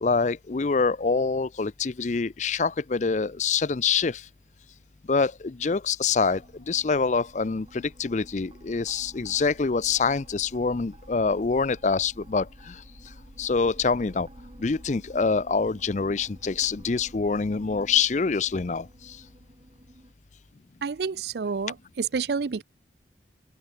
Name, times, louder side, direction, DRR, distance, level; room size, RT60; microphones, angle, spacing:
voice 1, 0.0-4.2 5.1-6.4 6.7-12.7 13.4-14.3 14.6-18.9, left 4 dB, 40° left, 0.5 m, -25 dB
sound 1, 6.1-20.1, right 1 dB, 30° right, 1.1 m, -51 dB
voice 2, 20.8-22.6, right 5 dB, 65° right, 0.5 m, -29 dB
open air
head